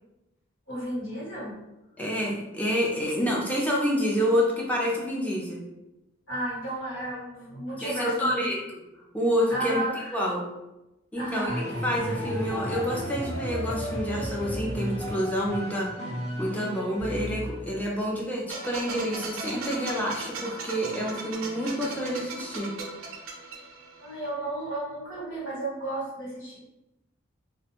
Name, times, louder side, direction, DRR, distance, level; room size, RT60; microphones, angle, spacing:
voice 1, 0.7-1.6 6.3-8.5 9.5-10.2 11.2-11.6 24.0-26.6, right 1 dB, 75° left, -7 dB, 1.3 m, -33 dB
voice 2, 2.0-5.6 7.8-8.8 9.1-9.8 10.1-10.4 11.1-15.9 16.4-22.8, equal, 10° left, -3 dB, 0.5 m, -28 dB
sound 1, 11.5-18.0, equal, 35° left, 0.8 m, -33 dB
sound 2, 18.5-24.2, right 3 dB, 90° right, 0.5 m, -38 dB
2.5 x 2.1 x 2.8 m, 0.95 s
head